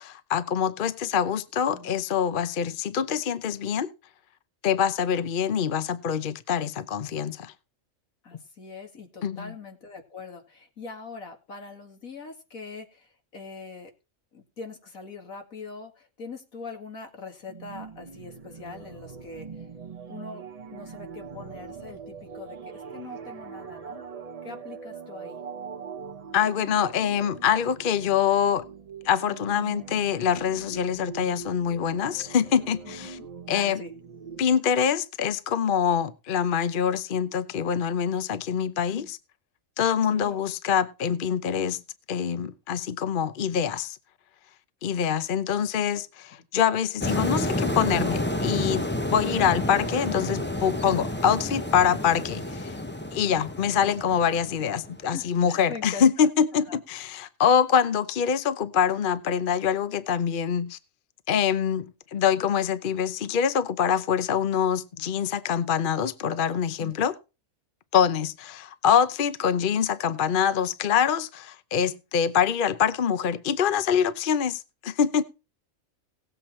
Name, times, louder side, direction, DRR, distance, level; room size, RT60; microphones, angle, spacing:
voice 1, 0.0-3.9 4.6-7.5 9.2-9.5 26.3-28.6 29.0-33.2 33.5-33.8 34.4-39.2 39.8-41.8 42.1-44.0 44.8-52.7 53.1-60.8 61.3-67.1 67.9-75.2, left 8 dB, 45° left, 0.8 m, -25 dB
voice 2, 8.2-13.9 14.3-19.7 20.1-24.0 24.4-25.4 32.9-33.3 33.5-33.9 38.9-39.1 40.1-40.4 55.1-56.3 56.7-56.8 66.8-67.1, left 4 dB, 80° left, 2.7 m, -42 dB
sound 1, 17.5-34.4, right 6 dB, 30° right, 0.8 m, -42 dB
sound 2, 47.0-55.3, left 1 dB, 10° left, 0.6 m, -30 dB
17.5 x 7.9 x 4.3 m
omnidirectional pair, 1.4 m